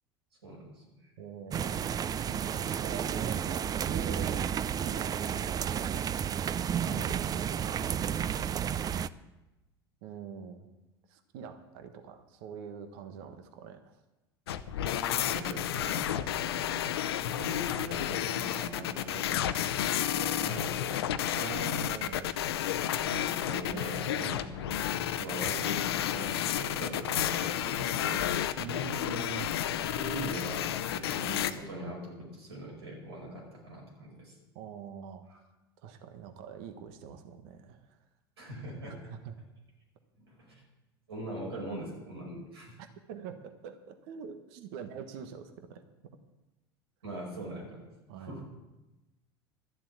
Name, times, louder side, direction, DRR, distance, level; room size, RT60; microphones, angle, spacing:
voice 1, 0.4-1.1 6.8-7.1 15.1-16.3 17.4-19.3 20.1-21.1 23.0-24.5 24.9-28.3 29.8-34.3 35.3-35.4 38.4-39.1 40.2-40.6 41.1-42.8 47.0-47.9 48.2-48.5, right 1 dB, 85° right, -1 dB, 5.5 m, -42 dB
voice 2, 1.2-2.0 2.3-6.1 7.0-7.9 10.0-10.7 11.1-13.9 21.3-22.3 24.1-24.5 28.6-29.5 34.5-35.2 35.8-38.0 39.2-39.3 43.1-45.8 48.1-48.3, right 7 dB, 65° right, 8 dB, 1.3 m, -44 dB
sound 1, 1.5-9.1, right 8 dB, 30° right, 0.4 m, -32 dB
sound 2, 14.5-31.5, left 11 dB, 75° left, 0.7 m, -31 dB
12.5 x 7.5 x 8.6 m, 1.0 s
hypercardioid pair, 80°, 13 cm